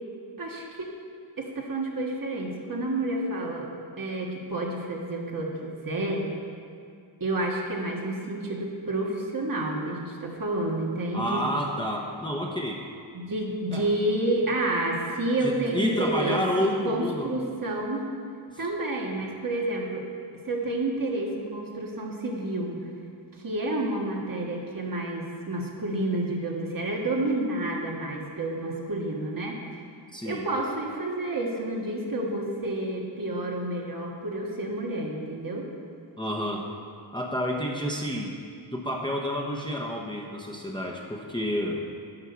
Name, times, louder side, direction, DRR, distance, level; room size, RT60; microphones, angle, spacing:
voice 1, 0.4-0.9 1.4-3.7 4.0-6.3 7.2-11.4 13.1-18.1 18.6-20.1 20.4-22.9 23.3-29.6 30.2-35.7, right 1 dB, 45° right, -1 dB, 1.5 m, -29 dB
voice 2, 11.1-12.9 13.7-13.9 15.4-17.3 18.5-18.7 30.1-30.5 36.2-36.7 37.1-38.4 38.7-41.8, equal, 10° left, -1 dB, 0.9 m, -30 dB
11.0 x 5.4 x 7.0 m, 2.3 s
wide cardioid pair, 110°, 47 cm